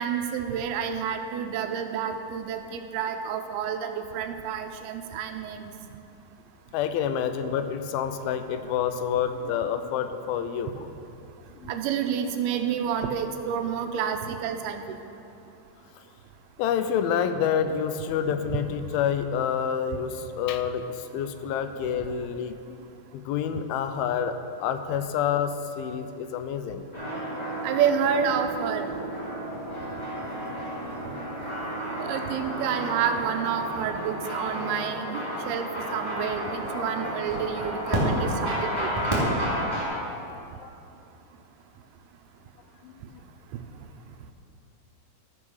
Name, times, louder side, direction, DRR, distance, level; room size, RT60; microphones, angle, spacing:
voice 1, 0.0-5.7 11.7-15.0 27.6-28.9 32.0-38.9, right 7 dB, 85° right, 7 dB, 2.6 m, -29 dB
voice 2, 6.7-10.9 11.6-11.8 16.6-22.8 23.1-26.9 40.6-40.7 42.8-43.2, left 8 dB, 85° left, 9 dB, 2.4 m, -28 dB
sound 1, 26.9-39.9, right 1 dB, 5° left, 2.0 m, -31 dB
13.5 x 5.2 x 6.3 m, 2.7 s
omnidirectional pair, 4.4 m